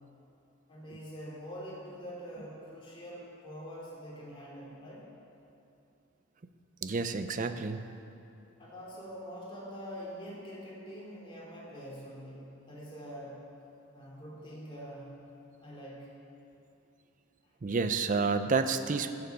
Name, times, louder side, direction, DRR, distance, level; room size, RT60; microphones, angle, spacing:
voice 1, 0.7-5.1 8.6-13.4 13.9-15.3 15.6-16.1, equal, 25° left, -5 dB, 2.7 m, -45 dB
voice 2, 6.8-7.9 17.6-19.1, right 4 dB, 40° right, 10 dB, 0.5 m, -29 dB
14.0 x 7.0 x 5.2 m, 2.7 s
head